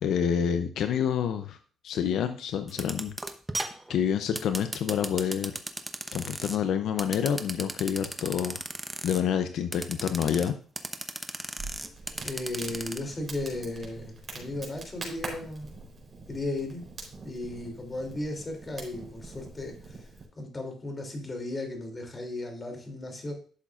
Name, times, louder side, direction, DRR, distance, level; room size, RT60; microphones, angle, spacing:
voice 1, 0.0-1.6 1.8-3.1 3.9-5.6 6.1-8.6 9.0-10.5, left 8 dB, 75° left, 9 dB, 0.6 m, -28 dB
sound 1, 2.7-6.6 7.0-9.2 9.7-10.5 10.8-13.0, right 1 dB, 10° right, 0.9 m, -35 dB
Crackle, 11.6-20.3, right 3 dB, 40° right, 3.9 m, -44 dB
voice 2, 12.2-15.7 16.3-16.8 17.2-20.1 20.4-23.3, left 2 dB, 25° left, 3 dB, 2.9 m, -35 dB
11.0 x 7.2 x 2.5 m, 0.43 s
cardioid pair, 90°, 0 cm